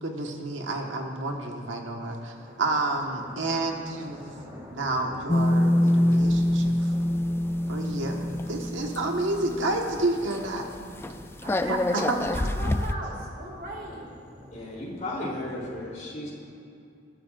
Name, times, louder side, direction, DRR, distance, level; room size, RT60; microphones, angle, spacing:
voice 1, 0.0-4.4 4.7-6.9 7.7-10.7 11.6-12.2, right 2 dB, 80° right, 1 dB, 1.5 m, -30 dB
sound 1, 2.3-15.7, equal, 25° right, 2.8 m, -48 dB
sound 2, 5.3-10.0 10.3-10.5 10.7-12.9, left 1 dB, 15° left, 0.3 m, -25 dB
voice 2, 11.4-14.1, right 1 dB, 50° right, -2 dB, 2.4 m, -38 dB
voice 3, 14.5-16.3, left 1 dB, 40° left, -4 dB, 3.3 m, -34 dB
20.5 x 12.5 x 2.6 m, 2.6 s
head